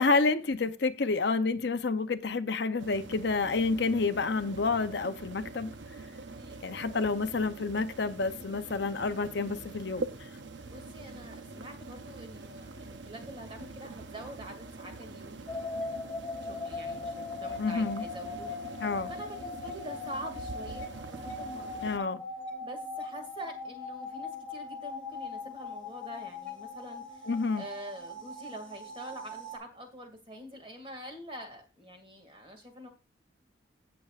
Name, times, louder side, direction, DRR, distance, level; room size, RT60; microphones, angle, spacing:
voice 1, 0.0-5.7 6.6-10.3 17.6-18.0 18.8-19.1 21.8-22.2 27.3-27.6, left 4 dB, 60° left, 0.6 m, -29 dB
sound 1, 2.8-22.0, right 3 dB, 65° right, 0.8 m, -44 dB
voice 2, 10.5-16.0 16.3-18.8 19.1-21.7 22.6-32.9, equal, 25° right, 2.2 m, -46 dB
sound 2, 15.5-29.6, left 3 dB, 5° left, 3.0 m, -40 dB
16.5 x 6.9 x 2.4 m
head